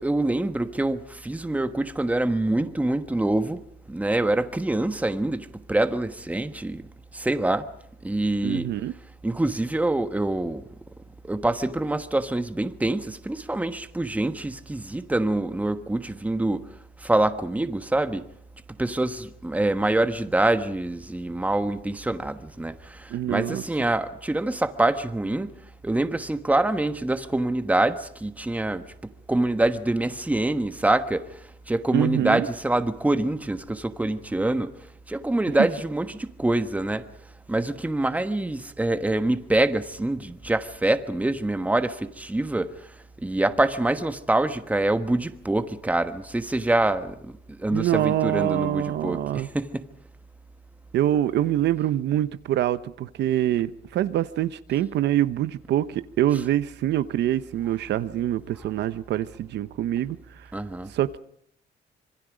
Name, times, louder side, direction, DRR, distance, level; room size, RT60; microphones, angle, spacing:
voice 1, 0.0-3.6 3.9-6.8 7.1-7.7 8.0-8.7 9.2-10.6 11.2-16.6 17.0-18.2 18.8-25.5 25.8-28.8 29.3-31.3 31.7-34.7 35.1-37.0 37.5-42.7 43.2-49.9 60.5-60.9, right 2 dB, 10° right, 1.3 m, -25 dB
voice 2, 8.4-8.9 23.1-23.6 31.9-32.5 47.7-49.5 50.9-60.2 60.9-61.2, right 12 dB, 75° right, 0.9 m, -25 dB
26.5 x 23.0 x 5.1 m
cardioid pair, 120°, 18 cm